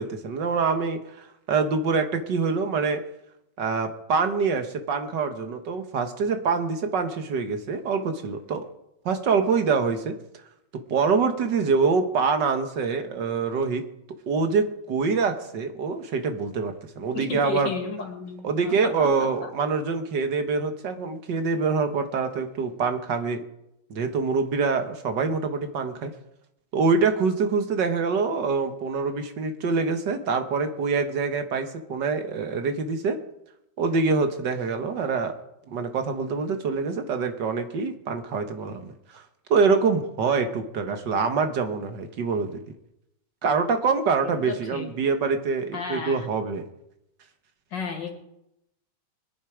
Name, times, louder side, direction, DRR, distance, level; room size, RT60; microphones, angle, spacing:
voice 1, 0.0-3.0 3.6-8.7 9.1-10.1 10.9-13.8 14.3-17.7 18.4-23.4 23.9-26.1 26.7-33.2 33.8-35.3 35.7-39.2 39.5-42.5 43.4-46.7, right 5 dB, 75° right, 7 dB, 2.0 m, -25 dB
voice 2, 17.1-18.7 19.0-19.1 19.4-19.5 44.2-44.9 45.7-46.3 47.7-48.2, left 4 dB, 75° left, 3 dB, 2.9 m, -33 dB
22.0 x 11.0 x 5.0 m, 0.84 s
omnidirectional pair, 1.9 m